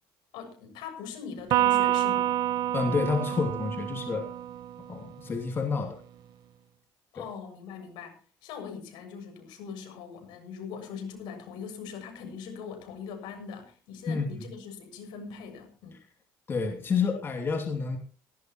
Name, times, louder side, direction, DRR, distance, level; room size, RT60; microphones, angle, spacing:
voice 1, 0.3-2.3 7.1-16.0, left 6 dB, 75° left, 5 dB, 7.0 m, -41 dB
Electric guitar, 1.5-5.0, right 13 dB, 65° right, 1.3 m, -27 dB
voice 2, 2.7-4.3 4.9-6.0 7.1-7.2 14.1-14.3 16.5-18.0, left 5 dB, 30° left, 3 dB, 2.9 m, -29 dB
18.0 x 18.0 x 3.1 m, 0.39 s
cardioid pair, 125°, 8 cm